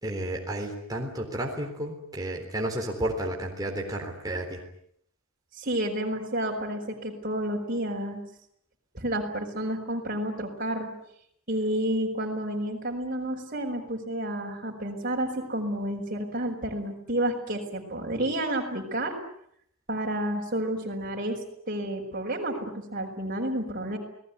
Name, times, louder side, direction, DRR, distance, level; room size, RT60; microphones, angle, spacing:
voice 1, 0.0-4.6, right 1 dB, 20° right, 0 dB, 3.8 m, -32 dB
voice 2, 5.6-8.2 8.9-10.9 11.5-19.2 19.9-21.4 21.7-24.0, right 1 dB, 40° right, -1 dB, 5.5 m, -30 dB
29.0 x 19.5 x 9.6 m, 0.71 s
head